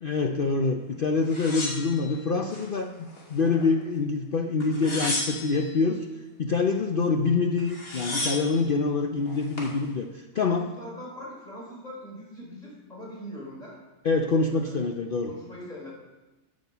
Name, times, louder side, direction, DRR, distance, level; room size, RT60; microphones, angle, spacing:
voice 1, 0.0-6.1 6.4-10.7 14.0-15.3, left 4 dB, 50° left, 3 dB, 0.8 m, -26 dB
sound 1, 1.3-2.7 3.1-3.9 4.6-5.7 7.3-7.4 7.6-8.6 9.3-9.8, left 2 dB, 90° left, 3.0 m, -33 dB
voice 2, 10.3-13.8 14.5-14.9 15.2-15.9, equal, 30° left, -4 dB, 4.4 m, -42 dB
9.4 x 9.2 x 6.9 m, 1.1 s
omnidirectional pair, 1.4 m